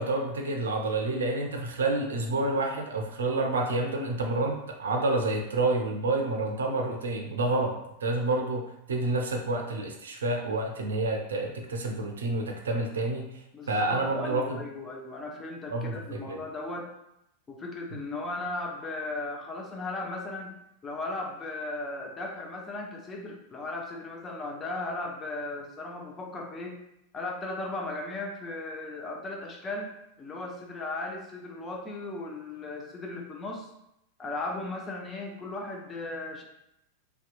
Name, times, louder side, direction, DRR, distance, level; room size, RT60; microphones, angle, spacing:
voice 1, 0.0-7.7 8.0-13.3 13.7-14.6 15.7-16.4 17.9-18.0, right 2 dB, 65° right, 2 dB, 0.4 m, -29 dB
voice 2, 13.5-16.9 17.5-26.8 27.1-33.7 34.2-36.4, left 2 dB, 20° left, 1 dB, 0.5 m, -36 dB
2.7 x 2.1 x 2.5 m, 0.82 s
figure-of-eight pair, 90°, 0 cm